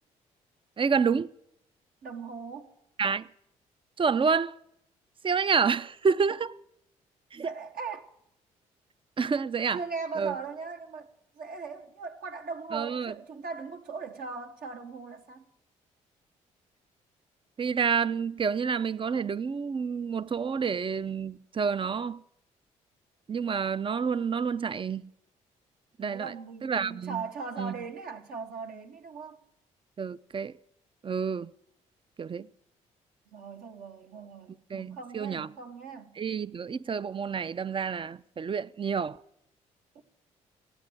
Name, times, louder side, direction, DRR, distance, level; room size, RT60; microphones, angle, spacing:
voice 1, 0.8-1.3 3.0-3.3 4.0-4.6 5.2-6.5 7.3-7.5 9.2-9.8 10.2-10.4 12.7-13.1 17.6-22.2 23.3-25.0 26.0-26.3 26.6-27.2 27.6-27.7 30.0-30.6 31.0-31.5 32.2-32.5 34.7-35.5 36.2-39.2, right 6 dB, 35° right, 0.6 m, -28 dB
voice 2, 2.0-2.7 7.3-8.1 9.7-15.5 26.0-29.4 33.3-36.1 39.9-40.0, right 5 dB, 65° right, 1.5 m, -39 dB
15.5 x 8.9 x 8.7 m
hypercardioid pair, 50°, 16 cm